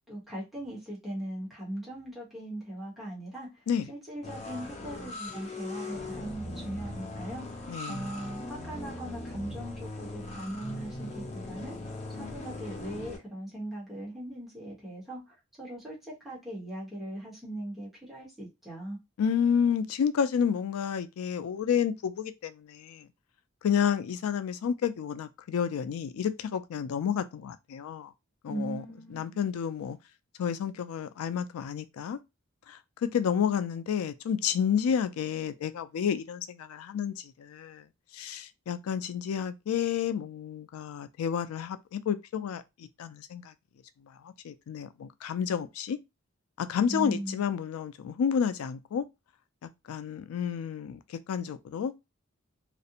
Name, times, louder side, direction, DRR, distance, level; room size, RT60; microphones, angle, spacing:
voice 1, 0.1-11.8 12.1-19.0 28.5-29.3 46.9-47.4, right 1 dB, ahead, 1.0 m, -39 dB
sound 1, 4.2-13.2, left 1 dB, 30° left, 0.5 m, -39 dB
voice 2, 7.7-8.0 19.2-23.1 23.6-28.1 28.4-28.8 29.1-30.0 30.4-32.2 32.7-37.8 38.1-43.5 44.2-46.0 46.6-49.0 49.6-51.0 51.3-51.9, left 7 dB, 90° left, 0.3 m, -30 dB
2.5 x 2.0 x 2.7 m
head